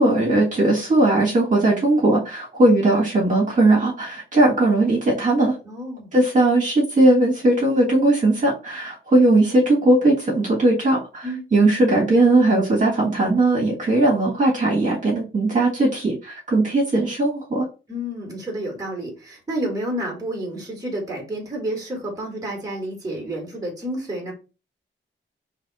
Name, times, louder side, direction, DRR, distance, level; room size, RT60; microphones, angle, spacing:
voice 1, 0.0-5.5 6.1-11.2 11.5-17.6, right 2 dB, 40° right, -3 dB, 1.6 m, -18 dB
voice 2, 5.6-6.1 11.2-11.4 17.9-24.3, right 1 dB, 15° right, -1 dB, 1.7 m, -30 dB
3.5 x 3.0 x 4.1 m, 0.31 s
wide cardioid pair, 145°, 21 cm